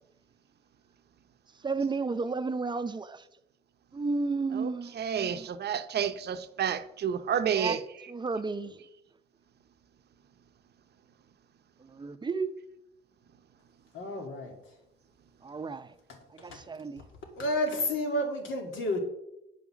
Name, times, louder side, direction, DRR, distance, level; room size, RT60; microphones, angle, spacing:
voice 1, 1.6-3.3 3.9-5.5 7.5-7.8 8.1-8.8 11.8-12.6 15.4-15.9 16.3-17.0, right 4 dB, 20° right, 0.6 m, -33 dB
voice 2, 4.5-7.8, right 8 dB, 55° right, 0.7 m, -30 dB
voice 3, 13.9-14.5 16.1-16.6 17.4-19.0, left 1 dB, 75° left, 2.3 m, -31 dB
9.3 x 5.5 x 6.1 m
cardioid pair, 90°, 20 cm